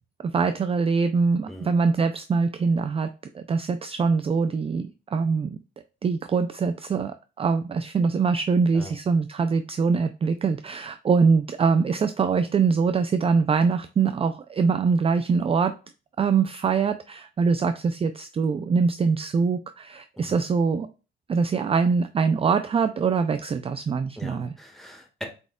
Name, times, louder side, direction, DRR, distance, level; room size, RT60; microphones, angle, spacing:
voice 1, 0.2-3.1 3.3-5.6 6.0-15.7 16.2-20.9 21.3-24.6, right 5 dB, 30° right, 10 dB, 0.4 m, -23 dB
voice 2, 24.2-25.2, equal, ahead, 1 dB, 1.6 m, -40 dB
4.7 x 4.2 x 2.3 m, 0.32 s
cardioid pair, 90°, 20 cm